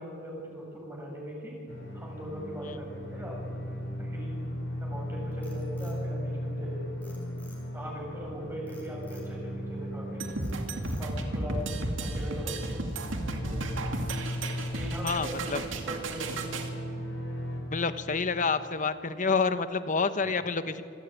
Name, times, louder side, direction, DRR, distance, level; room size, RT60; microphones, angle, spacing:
voice 1, 0.0-1.6 1.9-3.6 4.0-4.4 4.8-7.1 7.7-10.2 11.0-11.6 12.0-12.6 13.4-13.7 14.7-16.4 20.2-20.3, equal, 10° right, -1 dB, 7.4 m, -40 dB
sound 1, 1.7-17.6, equal, 65° left, 5.6 m, -37 dB
Frog, 5.3-6.6 7.0-7.9 8.7-9.3 9.8-10.1 10.4-11.3, left 2 dB, 10° left, 6.2 m, -57 dB
sound 2, 10.2-16.7, right 2 dB, 80° right, 2.4 m, -34 dB
voice 2, 15.0-15.6 17.6-20.8, left 4 dB, 40° left, 11 dB, 1.1 m, -28 dB
27.0 x 17.0 x 9.3 m, 2.9 s
head